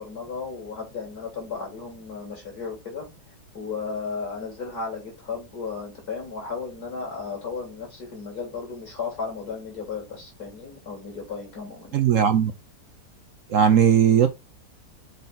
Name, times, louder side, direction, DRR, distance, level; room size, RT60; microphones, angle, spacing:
voice 1, 0.0-3.1 3.5-12.0, left 5 dB, 65° left, 3.9 m, -34 dB
voice 2, 11.9-12.5 13.5-14.3, right 8 dB, 60° right, 0.9 m, -18 dB
6.8 x 4.1 x 3.8 m
omnidirectional pair, 1.8 m